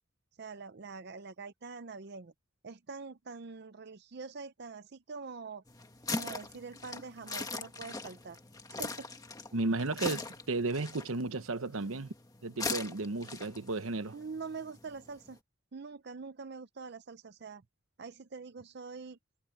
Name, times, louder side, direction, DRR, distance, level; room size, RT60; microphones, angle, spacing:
voice 1, 0.4-2.3 2.6-5.6 6.1-8.4 8.8-9.1 14.1-15.4 15.7-17.6 18.0-19.2, right 4 dB, 55° right, 0.6 m, -44 dB
sound 1, 5.7-15.4, left 3 dB, 20° left, 1.6 m, -41 dB
voice 2, 9.5-12.1 12.4-14.1, right 3 dB, 90° right, 1.0 m, -34 dB
head